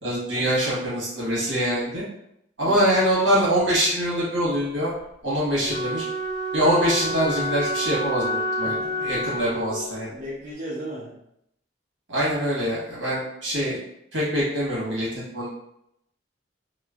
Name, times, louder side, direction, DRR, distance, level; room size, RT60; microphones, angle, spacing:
voice 1, 0.0-2.0 2.6-4.9 5.2-6.1 6.5-8.8 9.0-10.1 12.1-13.8 14.1-15.6, equal, 70° right, -7 dB, 1.3 m, -24 dB
Wind instrument woodwind instrument, 5.6-10.1, equal, 60° left, 0.6 m, -29 dB
voice 2, 8.6-9.4 10.1-11.2, equal, 45° right, -8 dB, 0.6 m, -37 dB
3.0 x 2.1 x 2.4 m, 0.78 s
head